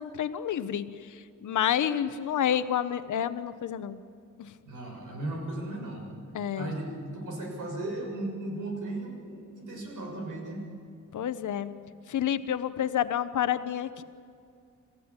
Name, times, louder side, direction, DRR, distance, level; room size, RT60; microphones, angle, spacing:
voice 1, 0.0-4.0 4.4-4.5 6.3-6.7 11.1-11.7 12.1-14.0, left 10 dB, 75° left, 12 dB, 1.0 m, -29 dB
voice 2, 4.7-6.1 6.6-10.6, right 2 dB, 90° right, 0 dB, 7.1 m, -36 dB
26.5 x 15.5 x 8.9 m, 2.4 s
cardioid pair, 110°, 30 cm